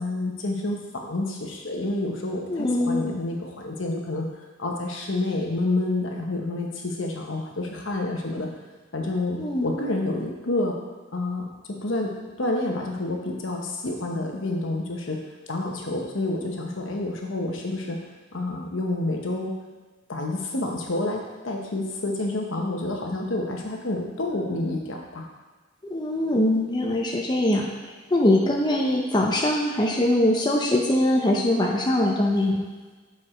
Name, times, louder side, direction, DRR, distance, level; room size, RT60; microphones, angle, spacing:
voice 1, 0.0-4.3 4.6-8.5 8.9-10.8 11.1-15.2 15.5-18.0 18.3-19.5 20.1-25.2, left 2 dB, 70° left, 1 dB, 1.0 m, -29 dB
voice 2, 2.5-3.1 9.4-9.7 25.8-27.7 28.1-32.7, left 1 dB, 20° left, -1 dB, 0.6 m, -22 dB
6.9 x 4.7 x 4.4 m, 1.3 s
head